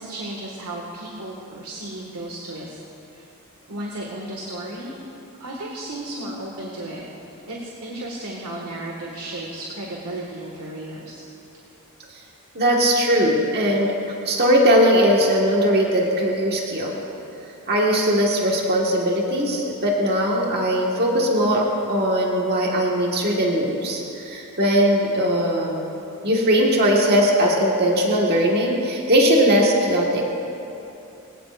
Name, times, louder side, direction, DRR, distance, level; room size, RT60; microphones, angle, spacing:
voice 1, 0.0-2.8 3.1-3.3 3.7-5.0 5.4-11.2, right 1 dB, 80° right, -3 dB, 1.8 m, -34 dB
voice 2, 12.5-14.0 14.2-17.0 17.7-25.8 26.2-30.2, equal, 45° right, -2 dB, 1.7 m, -19 dB
23.5 x 17.0 x 2.5 m, 2.8 s
head